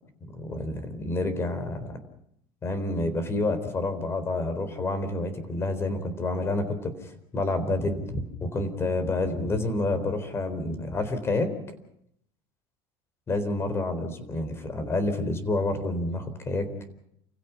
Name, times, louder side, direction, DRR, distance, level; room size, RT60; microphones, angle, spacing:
voice 1, 0.3-2.0 2.6-11.5 13.3-16.7, left 2 dB, 20° left, 11 dB, 4.0 m, -29 dB
29.5 x 16.5 x 6.0 m, 0.71 s
supercardioid pair, 135°, 11 cm